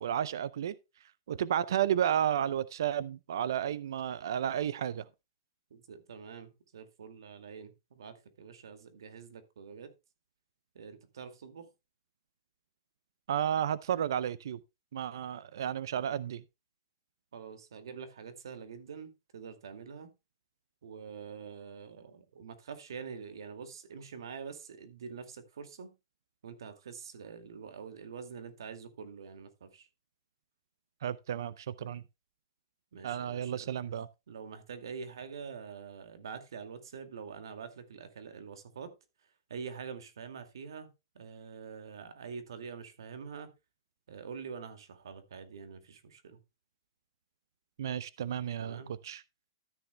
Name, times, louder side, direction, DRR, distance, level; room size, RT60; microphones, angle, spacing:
voice 1, 0.0-0.7 1.3-5.0 13.3-14.6 14.9-16.4 31.0-32.0 33.0-34.1 47.8-49.2, right 10 dB, 65° right, 0.5 m, -32 dB
voice 2, 5.7-9.9 10.7-11.7 17.3-20.1 20.8-25.9 26.4-29.9 32.9-33.7 34.3-38.9 39.5-40.9 41.1-43.5 44.1-46.4 48.6-48.9, right 6 dB, 85° right, 2.2 m, -45 dB
13.5 x 9.8 x 2.2 m
hypercardioid pair, 175°, 2 cm